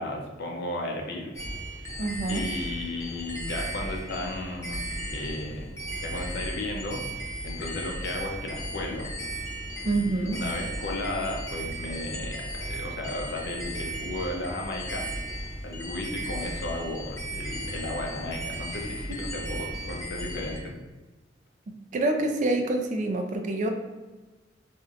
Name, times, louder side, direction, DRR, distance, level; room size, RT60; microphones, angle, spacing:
voice 1, 0.0-1.3 1.7-1.9 2.3-4.8 5.1-5.7 6.0-7.0 7.4-9.1 9.9-15.1 15.6-20.7, left 1 dB, 60° left, 0 dB, 0.7 m, -34 dB
sound 1, 1.3-20.6, right 1 dB, 15° left, 0.6 m, -35 dB
voice 2, 2.0-2.5 9.8-10.4 21.9-23.7, right 2 dB, 45° right, 4 dB, 0.4 m, -26 dB
4.3 x 2.6 x 2.5 m, 1.2 s
head